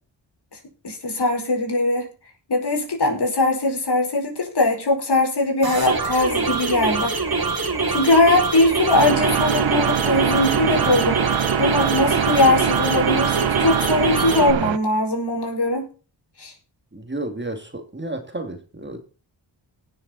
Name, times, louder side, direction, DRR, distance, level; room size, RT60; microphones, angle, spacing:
voice 1, 0.8-2.1 2.5-7.1 7.9-11.2 11.6-15.9 16.4-16.5, left 2 dB, 55° left, 2 dB, 4.9 m, -20 dB
sound 1, 5.6-14.5, right 4 dB, 50° right, 2.9 m, -24 dB
sound 2, 8.9-14.8, right 11 dB, 70° right, 0.7 m, -24 dB
voice 2, 16.9-19.0, right 2 dB, 25° right, 7 dB, 2.2 m, -32 dB
18.5 x 7.2 x 4.0 m, 0.37 s
cardioid pair, 55°, 46 cm